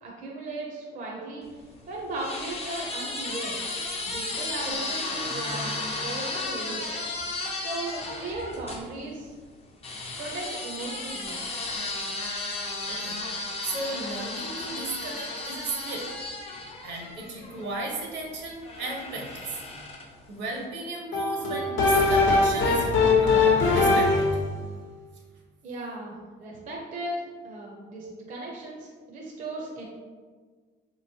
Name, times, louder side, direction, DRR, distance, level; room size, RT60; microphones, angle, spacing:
voice 1, 0.0-1.5 1.9-3.6 4.1-5.8 6.0-7.0 7.5-9.3 10.2-11.4 25.6-29.8, right 2 dB, 40° right, -2 dB, 0.6 m, -36 dB
sound 1, 1.5-8.8 9.8-17.7 18.6-20.2, left 2 dB, 30° left, 0.5 m, -34 dB
voice 2, 12.9-16.1 16.8-19.6 20.3-24.3, right 2 dB, 65° right, 1 dB, 0.8 m, -35 dB
sound 2, 21.1-24.5, left 3 dB, 75° left, 0.8 m, -21 dB
4.1 x 3.0 x 2.7 m, 1.5 s
cardioid pair, 145°, 20 cm